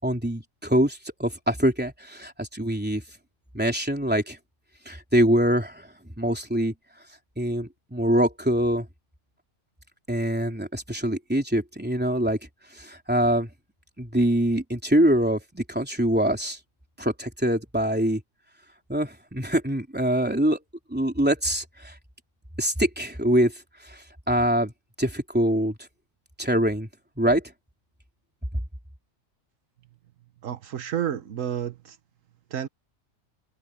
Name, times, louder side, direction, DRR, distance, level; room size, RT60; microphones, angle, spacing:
voice 1, 0.0-3.0 3.5-4.4 4.9-5.9 6.2-6.7 7.4-8.9 10.1-12.4 12.7-13.5 14.0-16.6 17.0-18.2 18.9-20.6 20.9-22.0 22.6-23.5 23.8-24.7 25.0-25.8 26.4-26.9 27.2-27.4, right 1 dB, 5° right, 3.5 m, -24 dB
voice 2, 30.4-32.0 32.5-32.7, right 9 dB, 80° right, 1.3 m, -30 dB
omnidirectional pair, 1.3 m